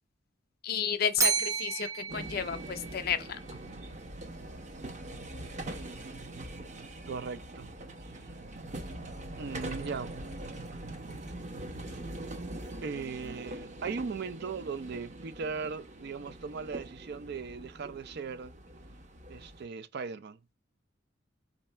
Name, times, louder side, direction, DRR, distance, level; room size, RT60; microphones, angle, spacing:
voice 1, 0.6-3.4, left 7 dB, 55° left, 0.5 m, -32 dB
Bell, 1.2-3.4, right 6 dB, 15° right, 0.6 m, -32 dB
sound 1, 2.1-19.6, right 1 dB, 40° right, 0.8 m, -43 dB
voice 2, 5.7-6.2 7.1-7.7 8.1-8.2 9.4-10.1 12.8-18.5 19.3-20.5, right 5 dB, 60° right, 0.5 m, -38 dB
4.0 x 2.7 x 4.4 m
head